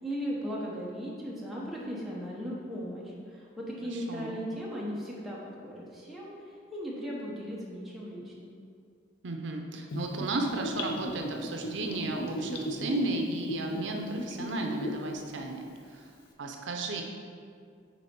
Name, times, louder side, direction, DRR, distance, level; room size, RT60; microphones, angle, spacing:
voice 1, 0.0-8.6, equal, ahead, -6 dB, 1.0 m, -37 dB
voice 2, 3.9-4.4 9.2-16.1 16.4-17.0, right 2 dB, 70° right, 2 dB, 0.6 m, -34 dB
Gurgling / Bathtub (filling or washing), 9.9-15.1 15.4-15.5, equal, 55° left, 0.7 m, -35 dB
6.1 x 4.2 x 4.5 m, 2.2 s
head